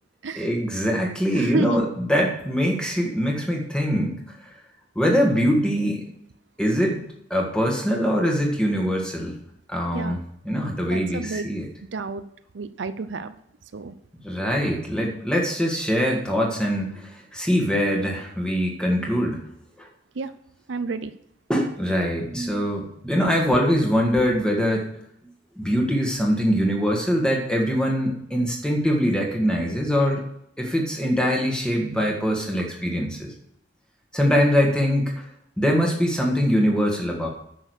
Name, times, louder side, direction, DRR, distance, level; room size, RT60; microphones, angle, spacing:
voice 1, 0.4-4.1 4.4-4.5 5.0-6.0 6.6-7.0 7.3-9.4 9.7-11.7 14.2-19.4 19.8-19.9 21.5-24.9 25.6-30.2 30.6-33.3 34.1-35.2 35.6-37.3, equal, 5° left, 0 dB, 1.7 m, -23 dB
voice 2, 1.3-1.8 9.9-10.2 10.9-11.5 11.9-12.2 12.5-13.3 13.7-13.9 20.2-20.3 20.7-21.1, right 4 dB, 75° right, 12 dB, 0.5 m, -30 dB
9.9 x 6.2 x 6.4 m, 0.75 s
head